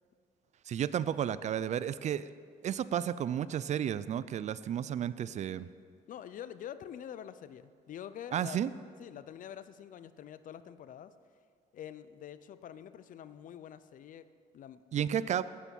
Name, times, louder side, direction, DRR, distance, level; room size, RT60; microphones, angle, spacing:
voice 1, 0.7-2.3 2.6-5.7 8.3-8.7 14.9-15.4, right 9 dB, 45° right, 16 dB, 0.4 m, -32 dB
voice 2, 6.1-8.6 9.0-11.1 11.7-14.3 14.5-15.1, left 9 dB, 50° left, 14 dB, 0.6 m, -46 dB
11.0 x 8.3 x 7.0 m, 2.1 s
cardioid pair, 110°, 17 cm